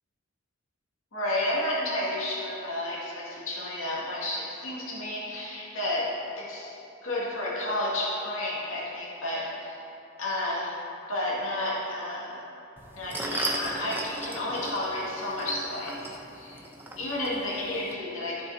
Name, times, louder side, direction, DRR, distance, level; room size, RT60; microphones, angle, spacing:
voice 1, 1.1-6.7 7.0-9.8 10.2-10.8 11.1-12.4 12.9-16.6 17.0-18.5, left 1 dB, 85° left, -6 dB, 2.2 m, -31 dB
sound 1, 12.8-17.9, right 1 dB, 10° right, 0.7 m, -36 dB
14.5 x 7.3 x 2.8 m, 2.9 s
head